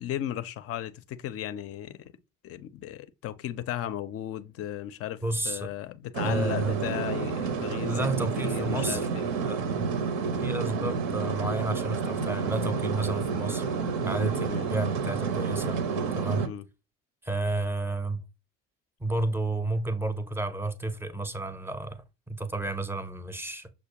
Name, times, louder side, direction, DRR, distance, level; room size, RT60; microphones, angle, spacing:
voice 1, 0.0-2.1 2.4-8.1 8.4-9.3 14.5-14.7 16.4-16.6, left 11 dB, 40° left, 0.4 m, -35 dB
voice 2, 5.2-5.7 6.2-6.8 7.8-9.1 9.4-9.9 10.4-13.6 14.0-15.8 16.1-16.5 17.2-18.2 19.0-23.7, right 2 dB, 5° right, 0.6 m, -31 dB
sound 1, 6.1-16.5, right 5 dB, 65° right, 0.7 m, -30 dB
6.1 x 2.1 x 2.7 m
figure-of-eight pair, 50°, 38 cm